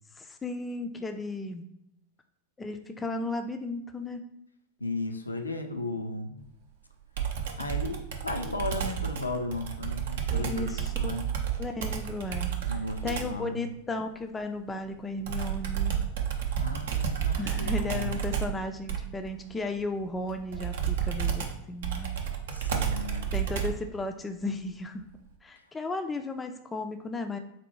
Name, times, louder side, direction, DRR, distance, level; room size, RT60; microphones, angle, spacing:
voice 1, 0.2-1.6 2.6-4.2 10.3-11.2 11.6-12.5 13.0-16.1 17.4-22.1 23.3-25.0 25.4-27.4, left 2 dB, 15° left, 6 dB, 0.3 m, -35 dB
voice 2, 4.8-6.4 7.6-11.3 12.6-13.7 16.6-18.3 22.5-23.3, left 2 dB, 80° left, 4 dB, 0.4 m, -35 dB
Computer keyboard, 7.2-13.4 15.2-23.9, right 8 dB, 60° right, 0.5 m, -31 dB
4.3 x 2.2 x 3.0 m, 0.79 s
figure-of-eight pair, 90°, 0 cm